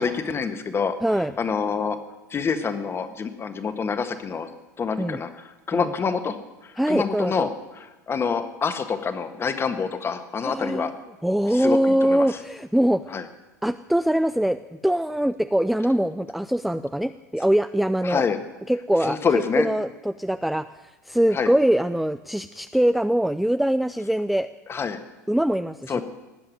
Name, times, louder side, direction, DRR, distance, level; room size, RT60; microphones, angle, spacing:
voice 1, 0.0-0.9 1.4-2.0 2.3-4.5 4.8-5.3 5.7-6.3 6.9-7.5 7.8-10.9 11.5-12.3 13.1-13.2 18.0-18.4 19.0-19.7 21.3-21.5 24.7-25.0 25.9-26.0, left 5 dB, 25° left, 9 dB, 1.7 m, -26 dB
voice 2, 1.0-1.3 5.0-5.2 5.7-5.9 6.8-7.5 10.4-10.9 11.2-13.0 13.6-14.6 14.8-18.2 18.7-19.2 19.5-20.7 21.1-24.5 25.3-26.0, right 1 dB, ahead, 11 dB, 0.4 m, -23 dB
19.0 x 7.7 x 9.5 m, 1.1 s
hypercardioid pair, 90°, 9 cm